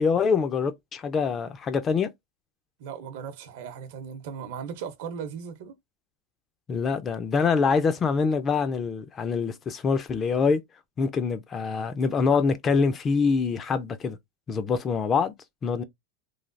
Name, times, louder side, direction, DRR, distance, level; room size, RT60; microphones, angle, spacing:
voice 1, 0.0-2.1 6.7-10.6 11.0-14.2 14.5-15.3 15.6-15.8, left 5 dB, 20° left, 0.3 m, -25 dB
voice 2, 2.8-5.8, right 7 dB, 60° right, 0.7 m, -37 dB
3.1 x 2.2 x 2.5 m
supercardioid pair, 160°, 0 cm